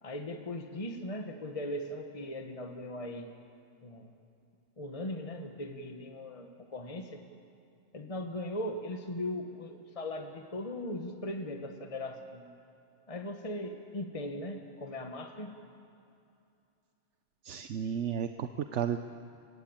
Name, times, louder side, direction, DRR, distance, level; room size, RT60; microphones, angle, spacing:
voice 1, 0.0-3.3 3.8-4.1 4.8-7.2 7.9-12.4 13.1-15.6, left 1 dB, 30° left, 5 dB, 1.3 m, -39 dB
voice 2, 17.4-19.0, right 9 dB, 75° right, 8 dB, 1.1 m, -33 dB
28.0 x 16.0 x 8.8 m, 2.6 s
omnidirectional pair, 1.2 m